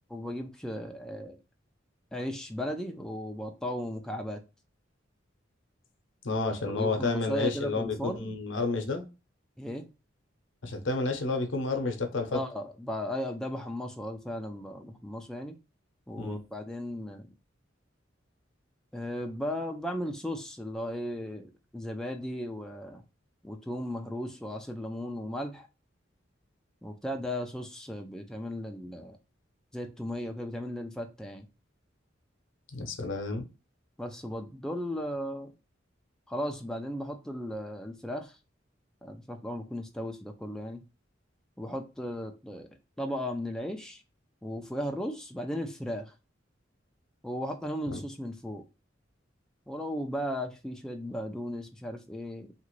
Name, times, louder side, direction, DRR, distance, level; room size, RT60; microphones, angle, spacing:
voice 1, 0.1-1.4 2.1-4.4 6.4-8.3 9.6-9.9 12.3-15.6 16.1-17.3 18.9-23.0 23.4-25.7 26.8-29.2 29.7-31.5 34.0-35.5 36.3-38.4 39.0-40.8 41.6-42.7 43.0-44.0 44.4-46.1 47.2-48.6 49.7-52.5, equal, 5° left, 0.3 m, -36 dB
voice 2, 6.2-9.0 10.6-12.4 16.2-16.4 32.7-33.5 47.9-48.0, left 3 dB, 80° left, 0.7 m, -30 dB
2.9 x 2.5 x 3.0 m
head